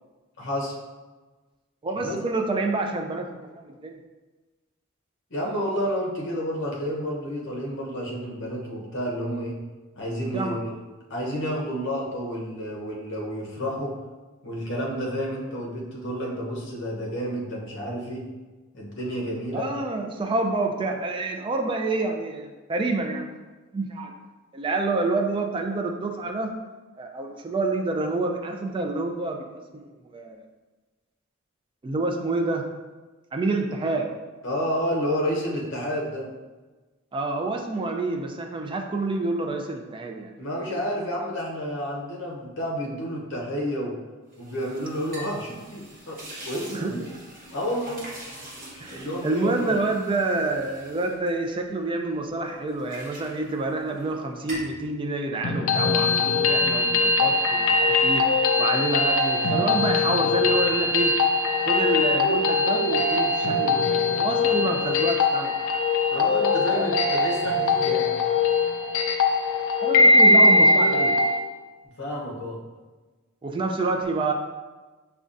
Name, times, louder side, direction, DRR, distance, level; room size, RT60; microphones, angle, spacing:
voice 1, 0.4-0.7 2.0-2.2 5.3-9.6 10.0-10.7 11.1-13.9 14.4-18.3 18.7-19.7 34.4-36.3 40.4-43.9 44.4-46.2 46.5-47.0 47.5-48.0 48.9-49.8 66.1-68.1 72.0-72.6, equal, 60° left, -2 dB, 0.8 m, -30 dB
voice 2, 1.8-4.0 10.3-10.6 19.5-23.3 23.7-24.1 24.5-26.5 27.0-30.4 31.8-32.7 33.3-34.1 37.1-40.3 40.7-40.8 46.7-46.9 48.8-58.3 58.6-61.1 61.7-65.8 66.7-67.0 69.8-71.2 73.4-74.3, right 3 dB, 25° right, 3 dB, 0.3 m, -28 dB
sound 1, 44.3-52.1 52.5-54.1 54.4-54.8, equal, 45° right, 1.1 m, -43 dB
sound 2, 55.4-71.4, left 3 dB, 80° left, 0.4 m, -21 dB
5.2 x 2.3 x 2.5 m, 1.3 s
head